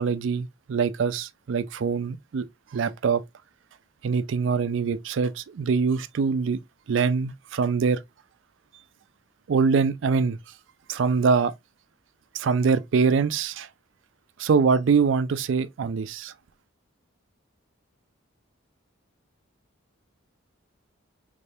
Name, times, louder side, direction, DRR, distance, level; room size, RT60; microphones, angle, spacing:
voice 1, 0.0-2.5 2.7-3.2 4.0-6.6 6.9-8.0 9.5-10.4 10.9-11.5 12.3-13.7 14.4-16.3, right 5 dB, 65° right, 0.4 m, -23 dB
3.3 x 3.3 x 2.6 m
head